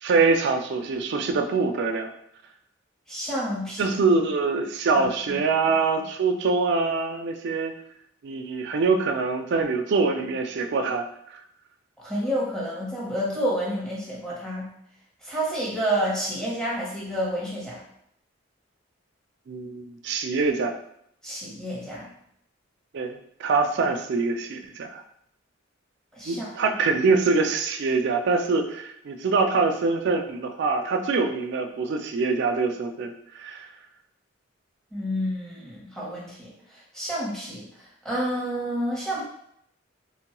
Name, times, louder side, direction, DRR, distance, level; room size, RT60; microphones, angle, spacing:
voice 1, 0.0-2.1 3.8-7.7 8.2-11.4 19.5-20.8 22.9-25.0 26.2-33.7, right 4 dB, 60° right, 6 dB, 0.4 m, -24 dB
voice 2, 3.1-3.9 5.0-5.4 12.0-14.7 15.2-17.8 21.2-22.1 26.2-26.5 34.9-37.7 38.0-39.2, equal, 5° left, -6 dB, 0.8 m, -29 dB
3.0 x 2.2 x 2.9 m, 0.71 s
head